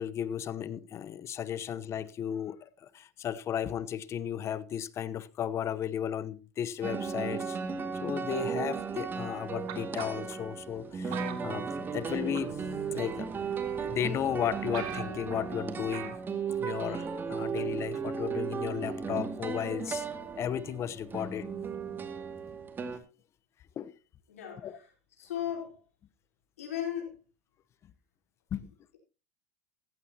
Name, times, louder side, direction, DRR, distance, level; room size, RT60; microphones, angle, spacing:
voice 1, 0.0-7.6 8.0-12.6 12.9-13.3 13.8-16.2 16.6-20.1 20.3-21.5 23.8-23.9 24.6-24.8 28.5-28.7, left 9 dB, 40° left, 1.0 m, -34 dB
sound 1, 6.8-23.0, right 6 dB, 30° right, 2.3 m, -35 dB
sound 2, 9.7-10.3 11.1-12.1 12.3-12.7 13.5-13.6 14.1-14.2 14.4-14.5 14.7-15.4 15.9-16.2 16.5-16.6, right 9 dB, 60° right, 2.9 m, -41 dB
voice 2, 24.3-24.9 25.2-25.8 26.6-27.1, left 10 dB, 90° left, 4.3 m, -36 dB
15.5 x 15.0 x 2.9 m
hypercardioid pair, 95°, 7 cm